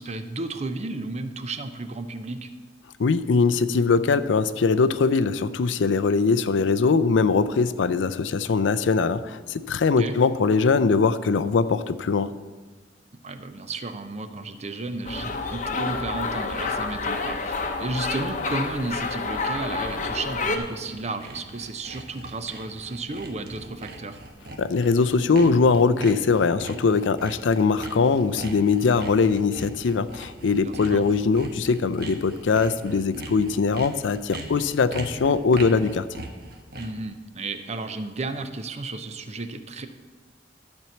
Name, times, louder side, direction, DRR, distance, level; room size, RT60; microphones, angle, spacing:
voice 1, 0.0-2.5 10.0-10.2 13.2-24.2 30.5-31.1 36.7-39.9, right 3 dB, 35° right, 9 dB, 0.6 m, -33 dB
voice 2, 3.0-12.3 24.6-36.1, left 4 dB, 80° left, 13 dB, 0.4 m, -21 dB
sound 1, 15.0-20.6, left 3 dB, 45° left, 0.8 m, -29 dB
Sawing, 19.8-37.1, right 2 dB, 55° right, 1.2 m, -41 dB
12.0 x 4.5 x 7.0 m, 1.4 s
head